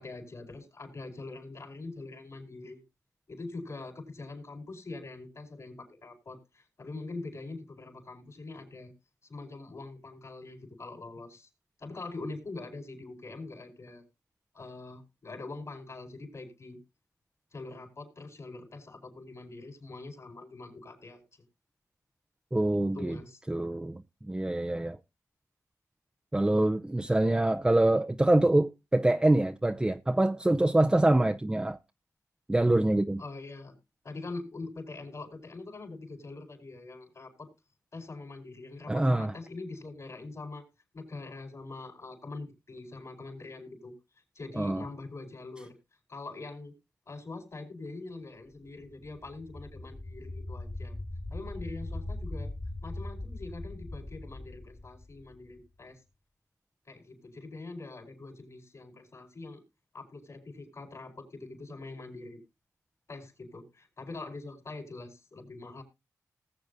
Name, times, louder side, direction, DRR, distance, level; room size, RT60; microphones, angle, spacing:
voice 1, 0.0-2.8 3.3-8.9 9.2-11.5 11.8-14.0 14.5-16.8 17.5-21.2 22.7-23.4 33.2-33.7 34.0-37.5 37.9-40.6 40.9-43.9 44.3-45.8 46.1-46.7 47.1-51.0 51.3-52.5 52.8-56.0 56.9-59.6 59.9-62.4 63.1-65.8, left 3 dB, 60° left, 4.7 m, -43 dB
voice 2, 22.5-23.2 23.5-25.0 26.3-31.8 32.5-33.2 38.9-39.3 44.6-44.8, right 1 dB, 15° right, 0.5 m, -25 dB
sound 1, 48.8-55.7, left 2 dB, 30° left, 1.7 m, -40 dB
19.5 x 7.7 x 2.6 m
cardioid pair, 70°, 6 cm